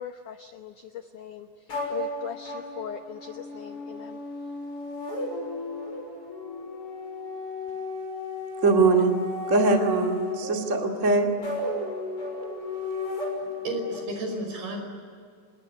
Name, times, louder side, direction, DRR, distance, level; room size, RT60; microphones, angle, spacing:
voice 1, 0.0-1.5 1.9-4.2, left 9 dB, 80° left, 7 dB, 1.8 m, -39 dB
sound 1, 1.7-14.0, left 2 dB, 30° left, 6.8 m, -34 dB
voice 2, 8.6-9.1 9.5-11.3, right 3 dB, 30° right, 2 dB, 1.5 m, -21 dB
voice 3, 13.4-14.8, right 1 dB, 60° right, 4 dB, 7.1 m, -32 dB
26.5 x 21.5 x 9.9 m, 2.2 s
omnidirectional pair, 5.1 m